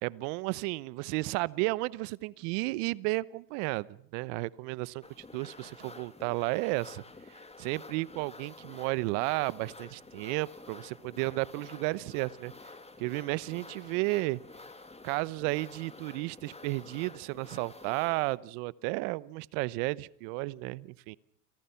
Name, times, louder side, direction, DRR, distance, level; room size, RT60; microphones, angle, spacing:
voice 1, 0.0-7.0 7.6-12.5 13.0-14.4 15.0-21.2, right 22 dB, 70° right, 21 dB, 1.0 m, -33 dB
sound 1, 5.0-18.4, left 3 dB, 15° left, 2.2 m, -50 dB
29.5 x 27.0 x 5.8 m, 0.62 s
hypercardioid pair, 85°, 48 cm